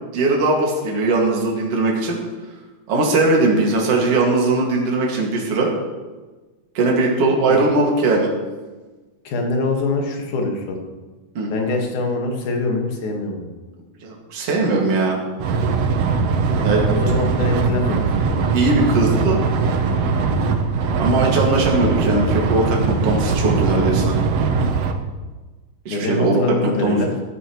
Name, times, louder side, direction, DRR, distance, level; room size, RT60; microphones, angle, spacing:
voice 1, 0.1-2.2 2.9-5.7 6.7-8.3 11.3-11.5 14.0-15.2 16.6-16.8 18.5-19.4 21.0-24.1 25.9-27.1, right 2 dB, 45° right, -1 dB, 2.8 m, -19 dB
voice 2, 9.2-10.8 11.5-13.5 16.6-18.5 25.9-27.1, left 2 dB, 60° left, 2 dB, 2.9 m, -24 dB
sound 1, 15.4-24.9, right 4 dB, 85° right, 1.3 m, -20 dB
14.0 x 13.5 x 3.1 m, 1.2 s
omnidirectional pair, 4.1 m